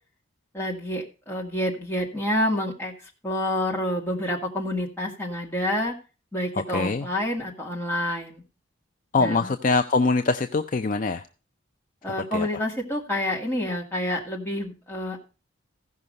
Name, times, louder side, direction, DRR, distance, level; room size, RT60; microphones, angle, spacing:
voice 1, 0.5-5.9 6.3-8.4 9.2-9.5 12.0-15.2, left 1 dB, 10° left, -1 dB, 2.1 m, -28 dB
voice 2, 6.7-7.1 9.1-11.2 12.3-12.5, left 3 dB, 40° left, 8 dB, 0.4 m, -23 dB
15.5 x 5.6 x 5.3 m, 0.33 s
head